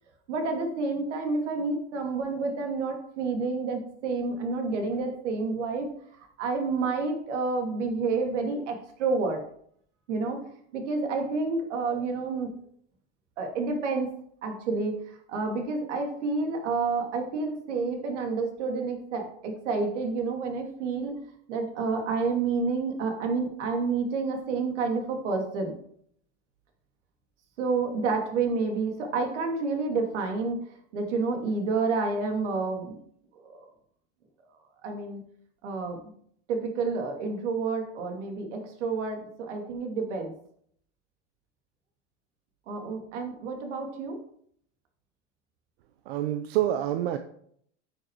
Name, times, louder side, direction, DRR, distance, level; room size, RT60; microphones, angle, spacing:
voice 1, 0.3-5.9 6.4-9.4 10.1-10.4 10.7-12.5 13.4-14.1 14.4-15.0 15.3-21.2 21.5-25.8 27.6-30.6 30.9-33.0 33.4-33.6 34.8-35.2 35.6-36.0 36.5-40.3 42.7-44.2, right 4 dB, 75° right, 4 dB, 2.6 m, -29 dB
voice 2, 46.1-47.2, right 12 dB, 55° right, 8 dB, 0.7 m, -27 dB
9.7 x 6.7 x 4.6 m, 0.65 s
supercardioid pair, 165°, 36 cm